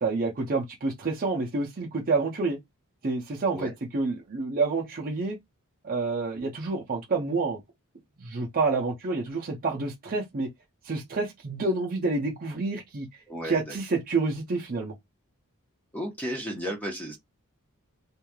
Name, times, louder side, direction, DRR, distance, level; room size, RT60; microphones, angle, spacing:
voice 1, 0.0-2.6 3.0-5.4 5.8-7.6 8.2-10.5 10.8-13.1 13.4-15.0, right 3 dB, 40° right, 0.6 m, -28 dB
voice 2, 13.3-13.8 15.9-17.2, equal, 5° left, 0.8 m, -34 dB
3.1 x 2.5 x 2.2 m
head